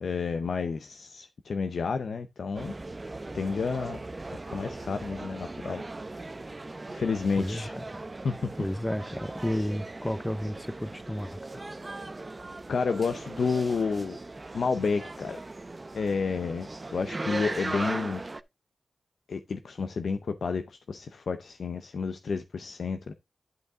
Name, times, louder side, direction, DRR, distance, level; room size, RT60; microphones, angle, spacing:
voice 1, 0.0-2.7 3.3-4.0 4.5-5.8 6.9-7.7 8.2-8.3 12.7-14.2 14.5-15.4 15.9-18.2 19.3-23.1, left 5 dB, 85° left, 0.7 m, -30 dB
sound 1, 2.5-18.4, right 2 dB, 40° right, 0.7 m, -39 dB
voice 2, 7.4-8.0 8.6-11.4, left 1 dB, 10° left, 0.7 m, -32 dB
11.0 x 5.4 x 3.6 m
cardioid pair, 55°, 0 cm